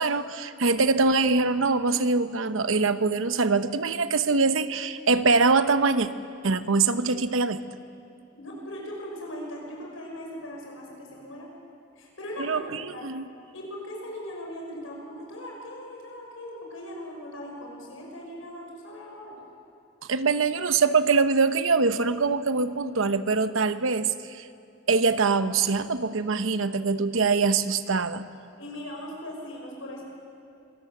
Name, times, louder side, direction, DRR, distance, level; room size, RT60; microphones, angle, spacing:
voice 1, 0.0-6.1 6.4-7.6 12.4-13.2 20.1-24.5 24.9-28.3, right 4 dB, 80° right, 11 dB, 0.9 m, -23 dB
voice 2, 8.3-11.5 11.9-13.1 13.5-19.4 28.6-30.0, equal, 85° left, -1 dB, 6.5 m, -39 dB
25.5 x 18.0 x 7.9 m, 2.5 s
head